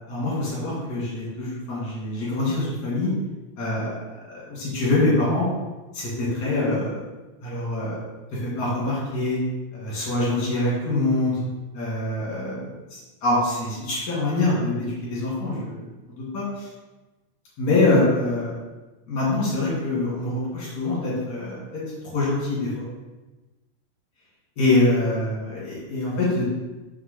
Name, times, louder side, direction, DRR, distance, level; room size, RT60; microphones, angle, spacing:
voice 1, 0.1-3.1 3.6-3.9 4.3-5.5 5.9-7.0 7.4-8.0 8.4-9.4 9.7-11.4 11.7-12.5 12.9-15.8 16.2-16.7 17.6-18.5 19.1-21.8 22.1-22.8 24.6-26.5, left 2 dB, 30° left, -7 dB, 2.3 m, -24 dB
7.2 x 6.3 x 3.4 m, 1.1 s
omnidirectional pair, 5.0 m